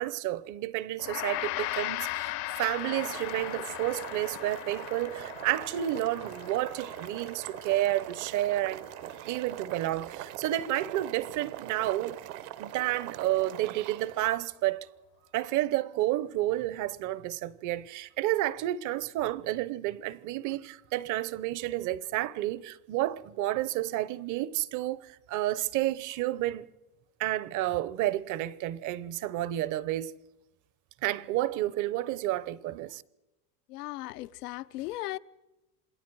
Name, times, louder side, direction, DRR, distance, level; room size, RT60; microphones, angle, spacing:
voice 1, 0.0-8.9 9.2-12.2 12.6-14.9 15.3-26.7 27.2-30.1 31.0-33.0, right 15 dB, 40° right, 0.9 m, -30 dB
Gong, 1.0-10.4, left 19 dB, 55° left, 0.8 m, -39 dB
Boiling, 2.7-14.3, right 14 dB, 65° right, 1.3 m, -43 dB
voice 2, 33.7-35.2, left 17 dB, 85° left, 0.8 m, -37 dB
27.5 x 20.5 x 4.8 m
supercardioid pair, 130°, 45 cm